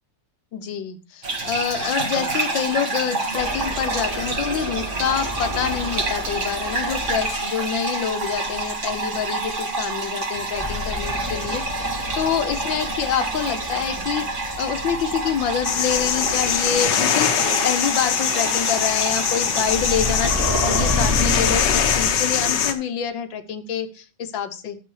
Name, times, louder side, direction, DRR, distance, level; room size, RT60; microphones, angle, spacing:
voice 1, 0.5-24.8, left 8 dB, 90° left, 10 dB, 1.8 m, -27 dB
sound 1, 1.2-20.3, right 3 dB, 40° right, 1.9 m, -28 dB
sound 2, 3.3-7.4 10.5-16.8 19.7-22.5, left 2 dB, 10° right, 1.9 m, -30 dB
sound 3, 15.6-22.7, left 8 dB, 70° left, 1.6 m, -22 dB
11.0 x 6.7 x 4.7 m, 0.35 s
omnidirectional pair, 2.0 m